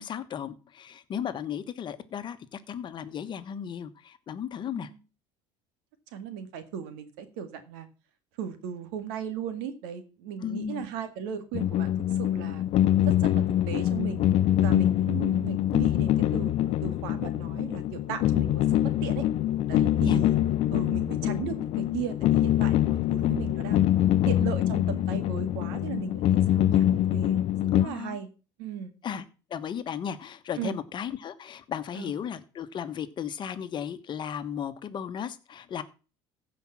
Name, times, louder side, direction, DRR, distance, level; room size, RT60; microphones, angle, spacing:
voice 1, 0.0-4.9 10.4-10.9 20.0-20.2 27.8-28.2 29.0-29.2 29.5-35.8, left 8 dB, 40° left, 11 dB, 1.3 m, -35 dB
voice 2, 4.7-5.0 6.1-7.9 8.4-11.9 12.2-12.6 13.1-14.3 14.6-19.2 19.7-20.4 20.7-23.9 24.3-28.3 28.6-28.9 30.6-30.8 32.0-32.1, right 8 dB, 85° right, 9 dB, 2.0 m, -37 dB
sound 1, 11.5-27.9, left 12 dB, 55° left, 0.7 m, -24 dB
15.5 x 5.3 x 5.9 m, 0.35 s
supercardioid pair, 110°, 12 cm